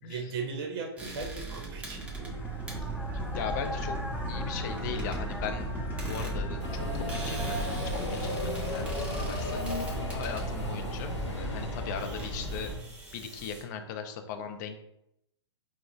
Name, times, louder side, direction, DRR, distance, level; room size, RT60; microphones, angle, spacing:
voice 1, 0.0-2.4 2.7-2.9, right 5 dB, 50° right, 2 dB, 0.7 m, -38 dB
sound 1, 1.0-13.6, right 2 dB, 10° right, 0.6 m, -42 dB
sound 2, 1.5-12.8, right 1 dB, 15° left, 0.9 m, -36 dB
voice 2, 3.3-4.0 4.3-5.7 6.0-9.6 10.1-12.7 13.1-14.8, left 7 dB, 40° left, 6 dB, 0.5 m, -38 dB
Subway metro underground, 6.6-12.8, left 1 dB, 85° left, 0.8 m, -36 dB
4.7 x 2.1 x 2.4 m, 0.80 s
figure-of-eight pair, 110°, 15 cm